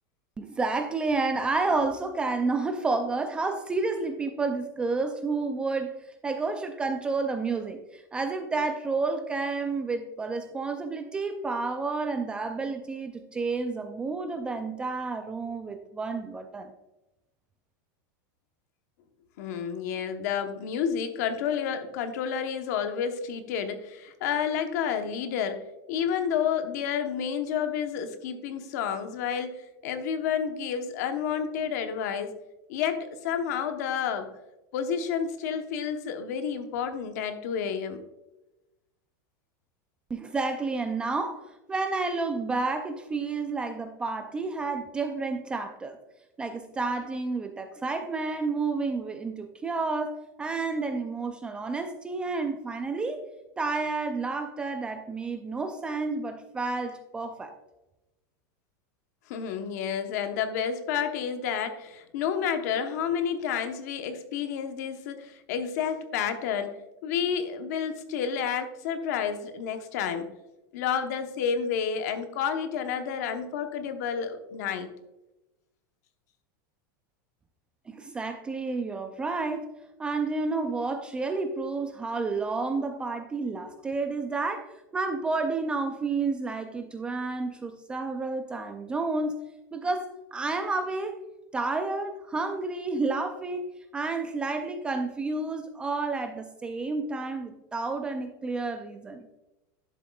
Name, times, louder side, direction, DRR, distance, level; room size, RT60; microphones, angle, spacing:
voice 1, 0.4-6.0 6.2-16.7 40.1-41.4 41.7-46.0 46.4-53.2 53.6-57.6 77.9-79.7 80.0-89.3 89.7-91.2 91.5-93.7 93.9-99.3, right 3 dB, 10° right, 7 dB, 0.3 m, -30 dB
voice 2, 19.4-32.3 32.7-34.3 34.7-38.0 59.3-66.7 67.0-70.3 70.7-74.9, left 7 dB, 55° left, 7 dB, 0.9 m, -30 dB
11.0 x 7.2 x 2.3 m, 0.97 s
supercardioid pair, 175°, 11 cm